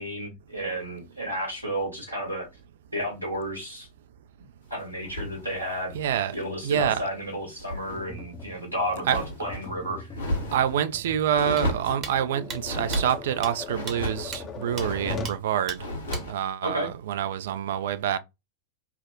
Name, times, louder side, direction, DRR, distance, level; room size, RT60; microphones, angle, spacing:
voice 1, 0.0-2.5 2.9-3.9 4.7-5.9 6.3-10.2 16.6-16.9, right 1 dB, 90° right, 1.2 m, -32 dB
sound 1, 5.0-7.1 7.4-8.0 8.3-9.7 10.1-10.8 11.3-12.0 12.6-13.2 13.7-14.3 14.7-15.3 15.7-16.4, equal, 75° left, 1.1 m, -33 dB
voice 2, 5.9-6.3 6.6-7.0 9.1-9.2 10.5-15.9 16.3-18.2, right 9 dB, 60° right, 0.3 m, -27 dB
Tap, 7.9-15.4, left 3 dB, 25° left, 0.5 m, -40 dB
sound 2, 11.6-11.7 12.0-12.1 12.5-12.6 12.9-13.0 13.4-13.5 13.9-14.0 14.3-14.4 14.8-14.9 15.2-15.4 15.7-15.8 16.1-16.2, right 5 dB, 30° right, 0.8 m, -35 dB
3.4 x 2.0 x 2.5 m
figure-of-eight pair, 90°, 0 cm